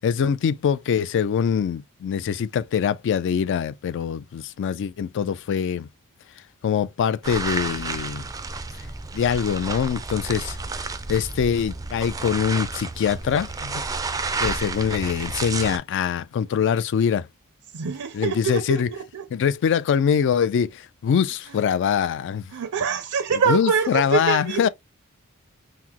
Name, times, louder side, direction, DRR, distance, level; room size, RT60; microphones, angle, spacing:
voice 1, 0.0-5.9 6.6-8.2 9.1-10.6 11.1-13.8 14.4-17.3 18.1-18.9 19.3-22.5 23.5-24.7, left 7 dB, 55° left, 0.3 m, -23 dB
sound 1, 7.2-15.8, right 3 dB, 15° right, 0.3 m, -31 dB
voice 2, 17.7-19.3 21.5-21.6 22.5-24.7, right 6 dB, 75° right, 0.5 m, -25 dB
5.7 x 2.0 x 2.8 m
head